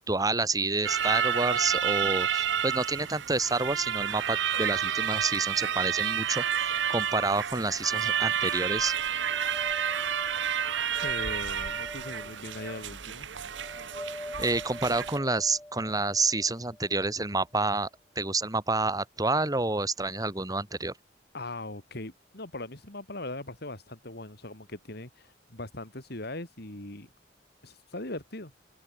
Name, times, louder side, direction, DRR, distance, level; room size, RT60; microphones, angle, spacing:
voice 1, 0.0-8.9 14.4-17.9 18.1-20.9, right 3 dB, 20° right, 3.0 m, -29 dB
sound 1, 0.8-15.2, right 8 dB, 75° right, 0.8 m, -30 dB
sound 2, 8.1-17.3, left 1 dB, 10° left, 6.3 m, -45 dB
voice 2, 11.0-13.3 21.3-27.1 27.6-28.5, left 2 dB, 60° left, 4.0 m, -40 dB
open air
head